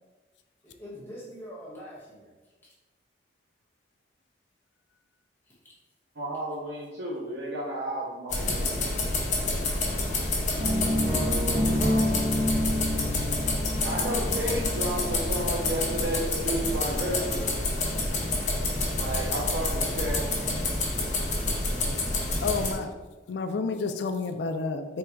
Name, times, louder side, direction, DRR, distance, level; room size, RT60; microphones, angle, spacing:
voice 1, 0.6-2.3, equal, 15° left, -7 dB, 1.2 m, -46 dB
voice 2, 6.2-8.7 13.8-17.5 18.9-20.2, right 1 dB, 80° right, -4 dB, 0.7 m, -32 dB
sound 1, 8.3-22.7, left 2 dB, 45° left, 0.8 m, -28 dB
sound 2, 10.6-18.5, left 1 dB, 30° right, 0.7 m, -30 dB
voice 3, 22.4-22.9 23.3-25.0, left 4 dB, 75° left, 8 dB, 0.4 m, -30 dB
3.6 x 2.3 x 4.3 m, 1.2 s
head